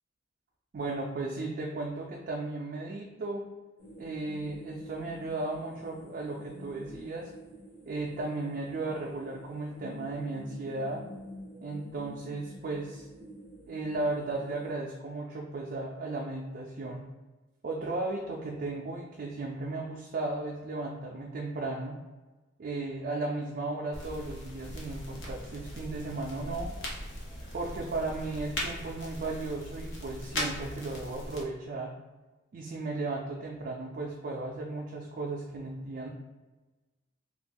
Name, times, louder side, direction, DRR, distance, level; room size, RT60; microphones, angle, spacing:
voice 1, 0.7-3.4 4.0-7.3 7.9-11.0 11.6-13.1 13.7-17.0 17.6-22.0 22.6-26.7 27.5-31.9 32.5-36.1, right 2 dB, 45° right, -1 dB, 0.3 m, -35 dB
sound 1, 3.8-14.7, equal, 45° left, 1.3 m, -48 dB
sound 2, 23.9-31.4, left 1 dB, 65° left, 0.7 m, -39 dB
2.6 x 2.3 x 3.6 m, 1.2 s
head